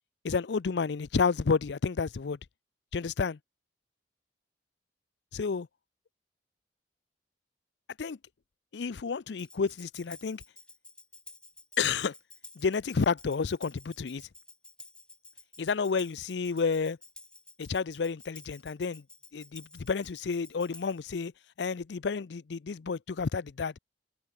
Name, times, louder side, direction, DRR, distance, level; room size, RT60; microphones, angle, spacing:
voice 1, 0.2-2.4 2.9-3.4 5.3-5.7 8.0-8.2 8.7-10.4 11.8-12.1 12.6-14.3 15.6-17.0 17.6-19.0 19.3-21.3 21.6-23.7, left 5 dB, 70° left, 0.5 m, -30 dB
Tambourine, 9.4-21.1, left 2 dB, 5° left, 1.4 m, -52 dB
head